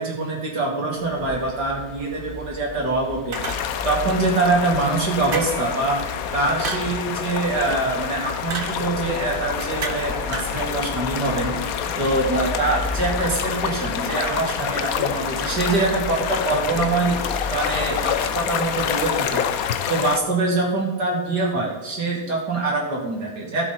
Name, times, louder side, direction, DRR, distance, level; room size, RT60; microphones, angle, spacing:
voice 1, 0.0-3.4 3.8-19.4 19.9-23.6, right 2 dB, 50° right, -2 dB, 2.8 m, -24 dB
sound 1, 0.9-19.2, left 2 dB, ahead, 2.0 m, -36 dB
sound 2, 3.3-20.2, left 8 dB, 65° left, 0.9 m, -27 dB
sound 3, 3.3-4.0 5.3-5.8 6.6-7.0 8.5-8.8 9.8-10.1 10.3-10.6, right 4 dB, 70° right, 0.5 m, -31 dB
15.0 x 7.4 x 4.2 m, 1.1 s
omnidirectional pair, 2.3 m